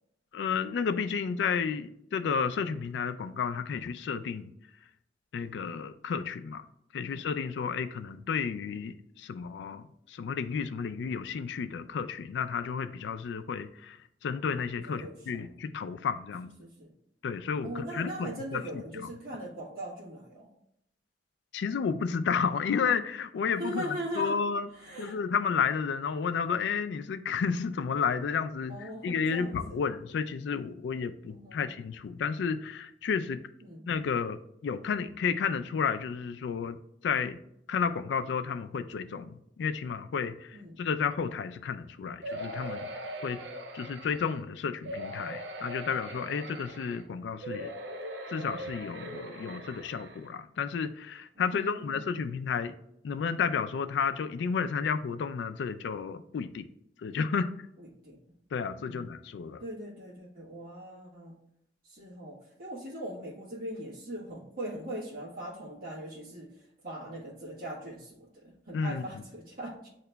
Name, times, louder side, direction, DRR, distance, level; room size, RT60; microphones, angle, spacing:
voice 1, 0.3-4.5 5.3-6.6 6.9-14.0 14.2-16.5 17.2-19.1 21.5-24.7 25.0-33.4 33.9-36.8 37.0-37.4 37.7-43.4 43.7-47.7 48.3-52.7 53.0-56.7 57.0-57.5 58.5-59.6 68.7-69.0, left 6 dB, 70° left, 0.3 m, -32 dB
voice 2, 6.9-7.3 14.8-15.5 16.6-16.9 17.6-20.5 23.6-24.4 24.7-25.2 28.7-29.8 31.3-31.6 33.6-33.9 40.5-40.8 51.3-52.2 57.0-57.2 57.8-58.2 58.8-59.1 59.6-61.4 61.9-66.6 66.8-69.9, right 1 dB, 55° right, 1.3 m, -41 dB
sound 1, 42.2-44.4 44.8-47.0 47.4-50.3 50.8-50.9 51.2-51.3, equal, 90° right, 0.5 m, -40 dB
7.9 x 2.9 x 2.2 m
head